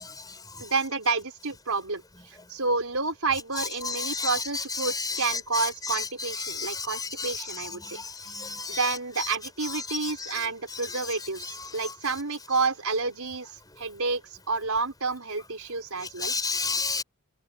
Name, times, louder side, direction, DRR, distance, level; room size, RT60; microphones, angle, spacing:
voice 1, 0.6-2.0 2.3-8.0 8.7-13.5 13.8-14.2 14.5-16.3, right 4 dB, 90° right, 4.3 m, -29 dB
voice 2, 4.0-4.3 4.8-5.0 6.4-6.9 7.2-7.3 7.9-8.0 8.3-8.8 16.2-17.0, left 4 dB, 20° left, 4.6 m, -30 dB
head